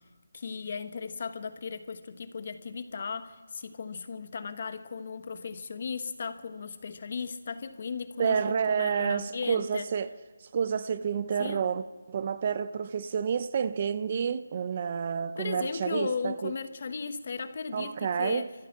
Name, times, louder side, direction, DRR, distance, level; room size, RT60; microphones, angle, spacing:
voice 1, 0.3-9.9 11.4-11.6 15.4-18.5, left 5 dB, 40° left, 1.2 m, -36 dB
voice 2, 8.2-10.1 10.5-16.5 17.7-18.5, right 7 dB, 30° right, 0.6 m, -29 dB
25.5 x 14.5 x 7.3 m
figure-of-eight pair, 175°, 0 cm